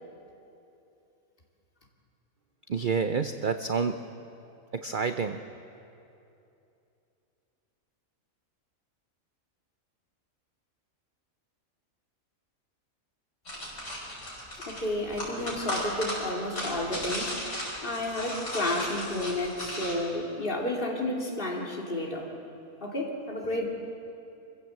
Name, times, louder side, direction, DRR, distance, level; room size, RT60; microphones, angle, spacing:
voice 1, 2.7-4.0 4.7-5.4, right 5 dB, 50° right, 8 dB, 0.6 m, -28 dB
sound 1, 13.5-19.9, left 1 dB, 55° left, 6.2 m, -36 dB
voice 2, 14.7-17.5 17.8-22.3 22.8-23.7, left 1 dB, 35° left, -1 dB, 2.8 m, -31 dB
25.5 x 15.5 x 7.7 m, 2.7 s
omnidirectional pair, 1.5 m